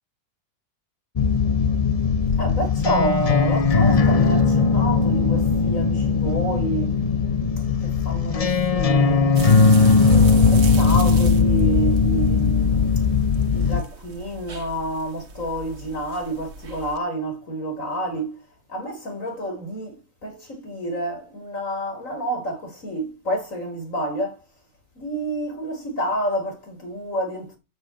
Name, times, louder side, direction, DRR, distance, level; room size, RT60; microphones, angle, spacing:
sound 1, 1.2-13.8, left 5 dB, 35° left, 0.6 m, -19 dB
voice 1, 2.4-7.0 7.8-9.3 10.1-13.0 13.5-18.4 18.7-24.4 25.0-27.6, right 1 dB, 65° left, 5.4 m, -29 dB
sound 2, 9.3-17.0, right 3 dB, 50° right, 1.7 m, -37 dB
10.5 x 7.5 x 8.7 m
omnidirectional pair, 1.4 m